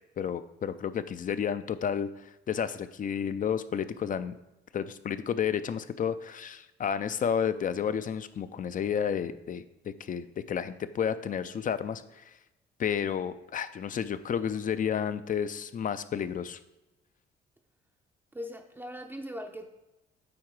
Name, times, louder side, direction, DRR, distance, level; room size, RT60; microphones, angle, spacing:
voice 1, 0.2-4.4 4.7-12.4 12.8-16.6, left 8 dB, 45° left, 13 dB, 0.5 m, -31 dB
voice 2, 18.3-19.7, equal, 10° right, 3 dB, 0.5 m, -40 dB
8.7 x 3.6 x 4.7 m, 0.96 s
cardioid pair, 90°, 20 cm